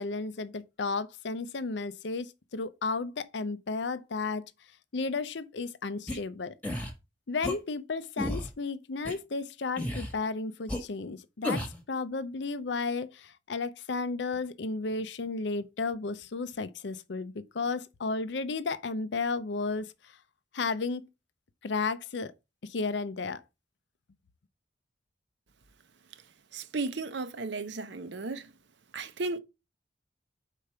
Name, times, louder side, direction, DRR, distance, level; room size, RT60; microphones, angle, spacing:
voice 1, 0.0-4.5 4.9-6.6 7.3-20.1 20.5-21.0 21.6-22.3 22.6-23.4, left 4 dB, 65° left, 0.6 m, -33 dB
sound 1, 6.1-6.2 6.6-6.9 7.4-7.6 8.2-8.5 9.1-9.2 9.8-10.1 10.7-10.8 11.4-11.8, left 1 dB, 10° left, 1.2 m, -32 dB
voice 2, 26.5-28.5 28.9-29.4, right 3 dB, 70° right, 0.8 m, -34 dB
5.0 x 4.6 x 5.6 m
head